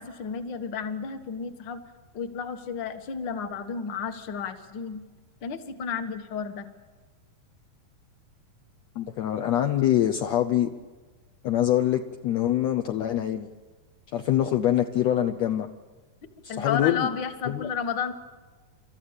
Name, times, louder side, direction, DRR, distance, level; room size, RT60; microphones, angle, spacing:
voice 1, 0.0-1.8 2.1-5.0 5.4-6.7 16.5-18.1, left 6 dB, 55° left, 8 dB, 1.3 m, -32 dB
voice 2, 9.0-10.7 11.4-13.5 14.1-15.7 16.6-17.1 17.5-17.7, left 12 dB, 85° left, 5 dB, 1.5 m, -24 dB
29.5 x 14.0 x 8.8 m, 1.4 s
omnidirectional pair, 4.1 m